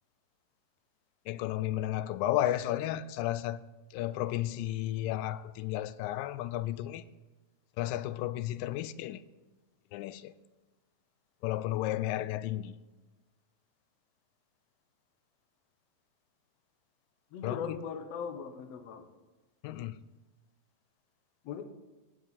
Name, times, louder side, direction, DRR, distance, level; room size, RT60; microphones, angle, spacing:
voice 1, 1.3-3.6 3.9-7.1 7.8-9.2 9.9-10.3 11.4-12.8 17.4-17.8 19.6-20.0, left 13 dB, 85° left, 2.2 m, -33 dB
voice 2, 17.3-19.1 21.4-21.6, left 6 dB, 65° left, 1.7 m, -39 dB
21.0 x 8.0 x 4.1 m
omnidirectional pair, 4.0 m